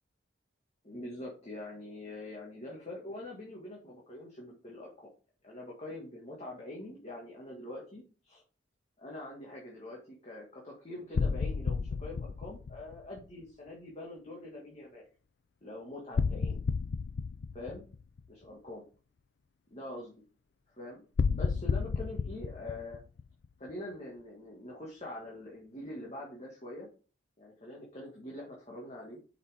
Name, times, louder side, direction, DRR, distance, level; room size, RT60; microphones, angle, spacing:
voice 1, 0.8-5.1 5.4-8.4 9.0-15.0 15.6-16.6 17.5-17.8 18.3-18.8 19.7-20.1 20.7-23.0 23.6-26.9 27.4-29.2, left 1 dB, 35° left, -3 dB, 1.8 m, -44 dB
sound 1, 11.1-13.2 16.1-18.2 21.2-23.7, left 5 dB, 60° left, 0.4 m, -32 dB
8.2 x 5.9 x 3.5 m, 0.36 s
head